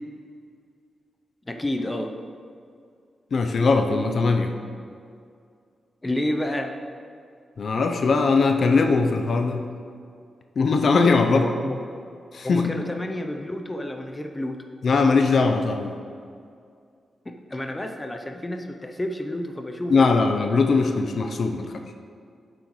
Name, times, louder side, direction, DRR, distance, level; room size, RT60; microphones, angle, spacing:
voice 1, 1.5-2.1 6.0-6.7 11.3-11.8 12.4-14.6 17.3-20.2, left 1 dB, 20° left, 5 dB, 0.6 m, -30 dB
voice 2, 3.3-4.5 7.6-9.6 10.6-11.5 12.3-12.7 14.8-15.9 19.9-21.7, left 4 dB, 60° left, 5 dB, 0.6 m, -20 dB
8.9 x 7.8 x 3.1 m, 2.3 s
cardioid pair, 95°, 0 cm